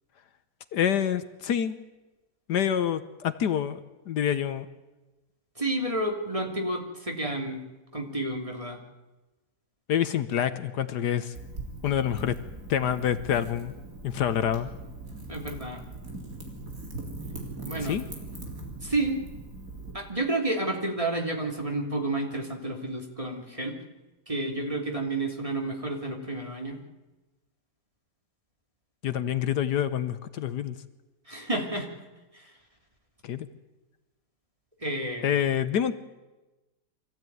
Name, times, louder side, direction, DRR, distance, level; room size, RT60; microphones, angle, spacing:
voice 1, 0.7-1.8 2.5-3.8 4.1-4.7 9.9-11.3 11.8-12.3 12.7-13.7 14.0-14.7 17.8-18.0 29.0-30.8 33.2-33.5 35.2-36.0, left 9 dB, 75° left, 12 dB, 1.5 m, -27 dB
voice 2, 5.6-7.6 7.9-8.8 15.3-15.8 17.6-18.0 18.8-19.2 19.9-23.8 24.3-26.8 31.3-31.9 32.3-32.5 34.8-35.4, right 2 dB, 20° right, 2 dB, 2.7 m, -30 dB
Wind / Fire, 11.3-19.9, right 2 dB, 50° right, 4.3 m, -40 dB
24.5 x 15.0 x 9.3 m, 1.1 s
omnidirectional pair, 1.9 m